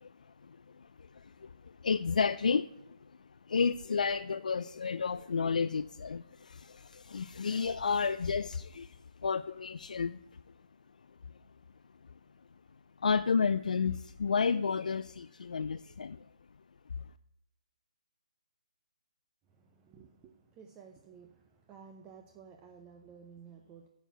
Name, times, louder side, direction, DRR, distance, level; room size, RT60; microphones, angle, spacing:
voice 1, 0.0-3.1 3.5-10.4 13.0-16.3, left 5 dB, 75° left, 0.3 m, -32 dB
voice 2, 19.5-23.9, right 6 dB, 15° right, 0.5 m, -54 dB
9.1 x 4.5 x 6.6 m
hypercardioid pair, 165°, 4 cm